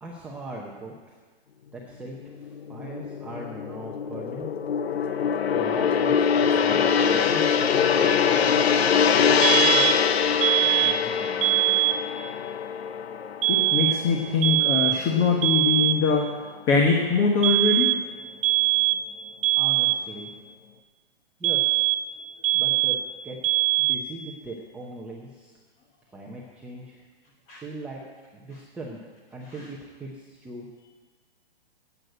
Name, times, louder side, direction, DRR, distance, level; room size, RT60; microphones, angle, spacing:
voice 1, 0.0-1.2 1.7-4.5 5.5-6.2 6.5-8.7 9.5-10.1 10.6-12.0 19.6-20.3 21.4-21.8 22.5-23.0 23.2-23.4 23.8-25.6 26.1-27.0 27.6-28.0 28.3-29.0 29.3-30.7, right 2 dB, 5° right, -4 dB, 0.7 m, -40 dB
Gong, 2.3-14.7 15.1-15.3, left 7 dB, 80° left, 0.9 m, -23 dB
sound 1, 9.4-10.1 10.4-11.1 11.4-12.1 13.4-14.1 14.4-15.1 15.4-16.1 17.4-18.1 18.4-19.1 19.4-20.1 21.4-22.1 22.4-23.1 23.4-24.1, right 17 dB, 60° right, 0.6 m, -22 dB
voice 2, 13.5-16.3 16.7-17.9 27.5-27.6, left 5 dB, 25° left, 1 dB, 1.1 m, -22 dB
11.5 x 8.1 x 7.9 m, 1.4 s
hypercardioid pair, 155°, 31 cm